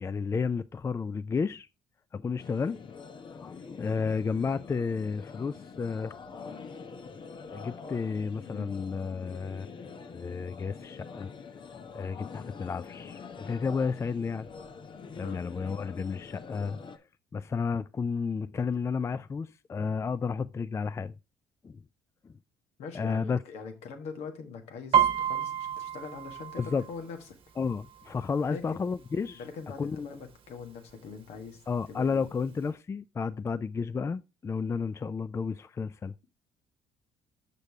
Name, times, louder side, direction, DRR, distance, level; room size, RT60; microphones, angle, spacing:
voice 1, 0.0-1.7 2.1-2.8 3.1-6.1 7.5-11.3 11.9-14.5 15.2-17.0 17.3-21.1 21.6-21.8 22.2-22.3 22.9-23.4 26.6-26.8 27.6-29.4 29.8-30.1 31.7-36.1, left 5 dB, 25° left, 0.3 m, -32 dB
sound 1, 2.4-17.0, left 5 dB, 45° left, 0.9 m, -45 dB
voice 2, 22.8-27.2 28.5-28.8 29.3-31.6 31.9-32.2, left 5 dB, 70° left, 1.6 m, -42 dB
Piano, 24.9-28.6 28.9-29.3 29.7-30.3 30.9-31.0 31.2-32.3 32.6-32.7, right 9 dB, 50° right, 1.1 m, -30 dB
6.7 x 6.4 x 3.5 m
supercardioid pair, 65°, 11 cm